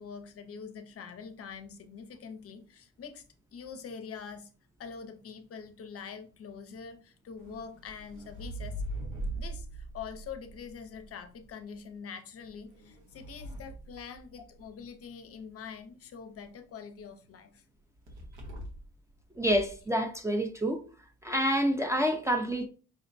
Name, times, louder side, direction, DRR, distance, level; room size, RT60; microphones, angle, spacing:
voice 1, 0.0-3.2 3.5-4.5 4.8-8.8 9.3-17.6, left 6 dB, 50° left, 0.6 m, -44 dB
sound 1, 7.4-11.5 12.4-14.8 18.1-19.0 19.3-19.8, right 1 dB, 80° right, 1.1 m, -41 dB
voice 2, 19.4-20.8 21.2-22.7, equal, 10° right, 0.4 m, -28 dB
5.2 x 2.1 x 2.5 m
cardioid pair, 90°, 30 cm